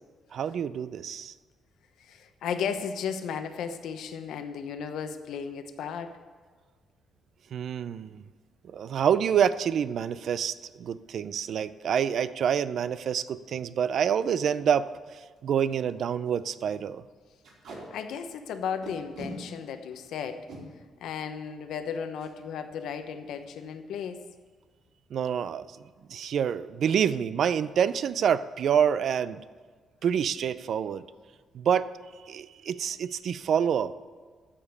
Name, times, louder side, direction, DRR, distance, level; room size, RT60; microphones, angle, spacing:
voice 1, 0.3-1.3 7.5-8.2 8.7-17.0 25.1-25.8 26.1-29.4 30.0-31.1 31.5-31.9 32.2-34.0, right 8 dB, 55° right, 15 dB, 0.4 m, -27 dB
voice 2, 2.0-6.2 17.9-20.5 21.0-24.2, left 7 dB, 80° left, 8 dB, 0.9 m, -35 dB
Packing tape duct tape, 14.7-14.9 15.4-15.5 15.7-15.9 16.2-16.4 17.4-17.8 18.8-19.3 20.3-20.6 22.1-22.3 22.7-22.9 23.1-23.5, right 2 dB, 75° right, 4.5 m, -43 dB
14.0 x 5.1 x 8.5 m, 1.5 s
cardioid pair, 145°, 0 cm